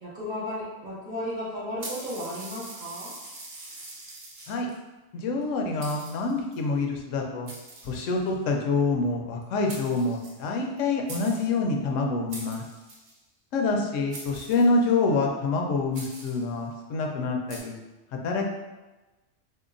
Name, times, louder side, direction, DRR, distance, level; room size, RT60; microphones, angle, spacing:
voice 1, 0.0-3.1, left 1 dB, 40° right, -8 dB, 1.3 m, -34 dB
sound 1, 1.8-4.8 5.4-5.5 5.8-6.5 7.5-8.4 9.4-9.5 9.7-10.8 11.1-11.6 12.3-13.2 14.1-15.0 15.9-16.5 17.5-17.6, right 2 dB, 60° right, 0.9 m, -43 dB
voice 2, 5.1-7.5 7.8-12.6 13.5-17.8 18.1-18.4, left 3 dB, 90° left, 2 dB, 0.9 m, -26 dB
3.7 x 2.8 x 2.5 m, 1.1 s
omnidirectional pair, 1.3 m